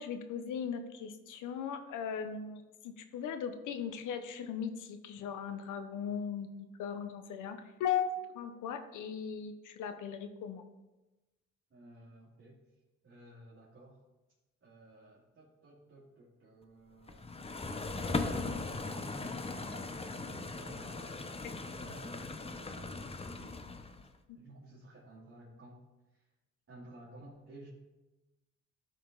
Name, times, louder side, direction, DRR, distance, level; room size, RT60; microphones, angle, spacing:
voice 1, 0.0-6.5 6.8-10.6 24.3-24.4, left 7 dB, 80° left, 8 dB, 0.9 m, -38 dB
voice 2, 11.7-12.6 13.0-14.0 14.6-17.3 18.1-23.5 24.3-25.8 26.1-26.3 26.7-27.7, right 1 dB, 40° right, -7 dB, 2.5 m, -53 dB
sound 1, 17.1-24.1, left 3 dB, 20° left, 0.7 m, -39 dB
12.0 x 5.1 x 3.9 m, 1.1 s
cardioid pair, 90°, 30 cm